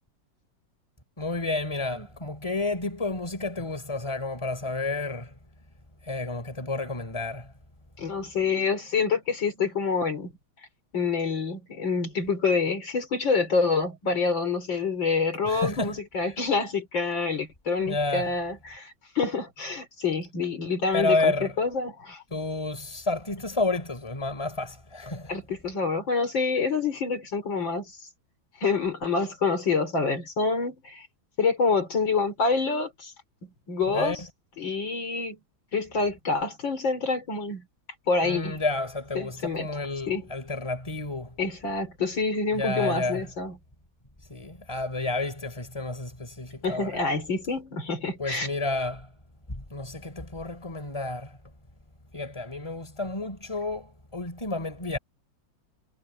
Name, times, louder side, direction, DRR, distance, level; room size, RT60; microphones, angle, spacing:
voice 1, 1.2-5.3 6.0-7.5 15.5-16.0 17.8-18.3 20.9-21.5 22.3-25.3 33.9-34.2 38.2-41.4 42.5-43.3 44.3-47.1 48.2-49.1 49.5-51.4 52.1-55.0, left 2 dB, 15° left, 4.1 m, -30 dB
voice 2, 8.0-10.3 10.9-22.2 25.3-27.9 28.6-31.1 31.4-33.1 33.7-34.2 34.6-35.4 35.7-37.6 38.1-38.6 39.1-39.7 40.1-40.3 41.4-43.6 46.6-48.5, left 4 dB, 70° left, 4.9 m, -27 dB
omnidirectional pair, 2.1 m